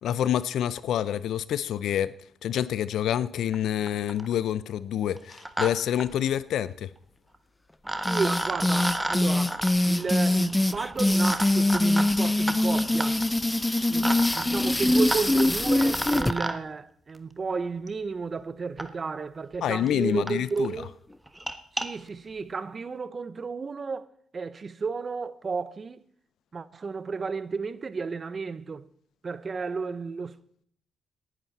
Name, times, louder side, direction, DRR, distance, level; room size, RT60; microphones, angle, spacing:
voice 1, 0.0-2.1 2.4-6.9 19.6-20.7, left 10 dB, 75° left, 0.6 m, -27 dB
sound 1, 3.5-3.6 3.9-4.3 5.2-5.7 6.0-6.1 7.3-7.4 7.8-16.6 17.9-18.0 18.8-18.9 19.5-19.6 19.9-20.0 20.3-20.4 20.6-20.8 21.3-21.9, right 1 dB, 10° right, 1.5 m, -34 dB
sound 2, 8.0-16.3, left 1 dB, 15° left, 0.7 m, -23 dB
voice 2, 8.0-13.2 13.9-21.0 21.7-24.1 24.3-26.0 26.5-28.9 29.2-30.4, right 4 dB, 45° right, 0.9 m, -32 dB
19.5 x 11.0 x 4.2 m
supercardioid pair, 60°, 0 cm